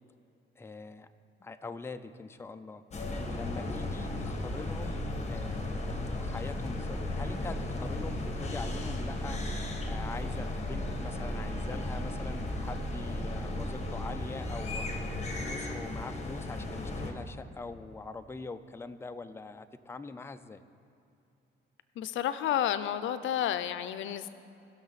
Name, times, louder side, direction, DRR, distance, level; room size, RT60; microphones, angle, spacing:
voice 1, 0.6-1.1 1.4-2.8 3.3-5.0 5.3-9.4 9.9-14.9 15.3-20.6, left 3 dB, 10° left, 9 dB, 0.5 m, -43 dB
sound 1, 2.9-17.1, left 1 dB, 35° left, 1.5 m, -35 dB
voice 2, 22.0-24.3, left 10 dB, 75° left, 13 dB, 0.5 m, -31 dB
19.0 x 6.4 x 4.1 m, 2.7 s
cardioid pair, 90°, 20 cm